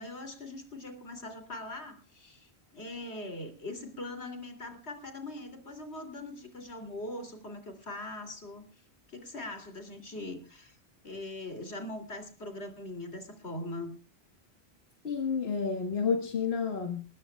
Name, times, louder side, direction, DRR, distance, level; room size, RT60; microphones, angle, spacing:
voice 1, 0.0-8.7 9.1-10.7 11.0-14.0, left 2 dB, 90° left, 3.2 m, -41 dB
voice 2, 15.0-17.0, left 5 dB, 70° left, 1.7 m, -30 dB
21.0 x 18.5 x 2.3 m
omnidirectional pair, 1.1 m